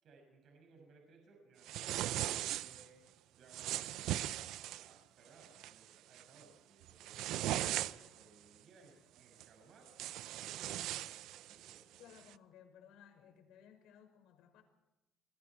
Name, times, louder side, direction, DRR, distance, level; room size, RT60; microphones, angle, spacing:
voice 1, 0.0-3.0 3.4-9.9 10.3-12.2, right 3 dB, 60° right, 2 dB, 6.4 m, -63 dB
sound 1, 1.6-2.9 3.5-4.9 5.4-5.7 6.1-6.4 6.8-8.2 9.4-9.5 9.9-11.8, right 13 dB, 80° right, 0.6 m, -39 dB
voice 2, 12.0-14.6, left 9 dB, 90° left, 5 dB, 5.7 m, -60 dB
29.0 x 21.5 x 4.7 m, 0.97 s
cardioid pair, 125°, 0 cm